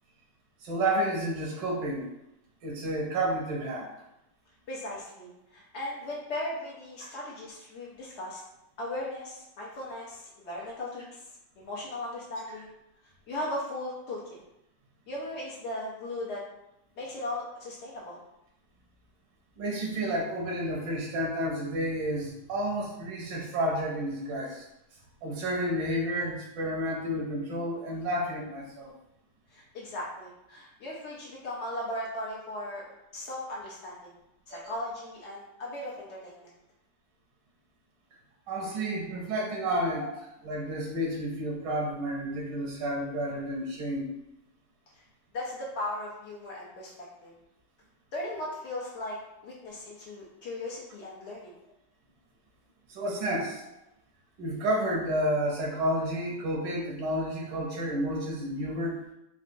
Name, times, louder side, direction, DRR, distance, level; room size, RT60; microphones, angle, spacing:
voice 1, 0.6-2.1 2.6-3.9 7.0-7.1 19.6-24.6 25.2-28.9 34.5-34.7 38.5-40.1 40.4-44.1 52.9-53.6 54.4-59.0, right 1 dB, 85° right, -2 dB, 1.3 m, -31 dB
voice 2, 4.7-8.4 8.8-11.0 11.6-12.7 13.3-14.2 15.1-16.4 17.0-18.2 29.5-32.8 33.1-34.1 34.5-36.5 38.9-39.0 40.0-40.1 45.3-46.9 47.2-47.3 48.1-49.2 49.4-51.5, left 1 dB, 80° left, -4 dB, 0.6 m, -37 dB
3.8 x 2.2 x 2.5 m, 0.85 s
omnidirectional pair, 1.9 m